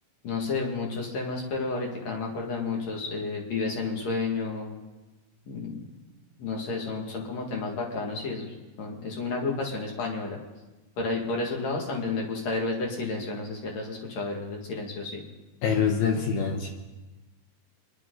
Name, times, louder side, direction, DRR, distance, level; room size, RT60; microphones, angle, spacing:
voice 1, 0.2-4.7 5.5-5.9 6.4-8.5 8.8-10.4 11.0-15.2, left 3 dB, 45° left, 0 dB, 2.8 m, -31 dB
voice 2, 15.6-16.7, left 6 dB, 70° left, 2 dB, 2.6 m, -25 dB
27.0 x 11.0 x 3.9 m, 1.1 s
omnidirectional pair, 5.0 m